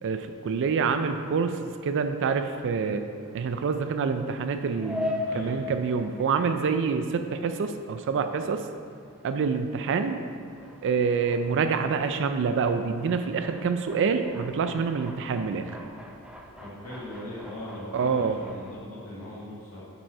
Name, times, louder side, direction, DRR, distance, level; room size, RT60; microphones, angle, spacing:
voice 1, 0.0-3.0 3.3-8.6 9.2-10.2 10.8-15.8 17.9-18.4, right 5 dB, 55° right, 8 dB, 0.4 m, -27 dB
sound 1, 1.5-18.7, left 2 dB, 5° right, 0.6 m, -42 dB
voice 2, 5.2-5.7 16.6-19.8, left 1 dB, 75° left, -9 dB, 1.8 m, -39 dB
7.3 x 5.3 x 4.5 m, 2.3 s
head